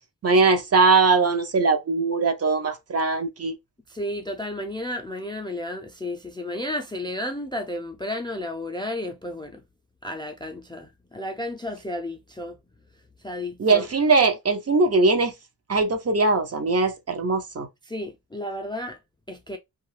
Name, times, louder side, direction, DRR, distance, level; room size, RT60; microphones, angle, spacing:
voice 1, 0.2-3.5 13.6-15.3 15.7-17.7, right 3 dB, 40° right, 0.5 m, -21 dB
voice 2, 3.9-9.6 10.0-12.6 13.2-13.9 17.9-19.0 19.3-19.6, left 1 dB, 15° left, 0.3 m, -32 dB
2.6 x 2.3 x 3.1 m
wide cardioid pair, 145°, 37 cm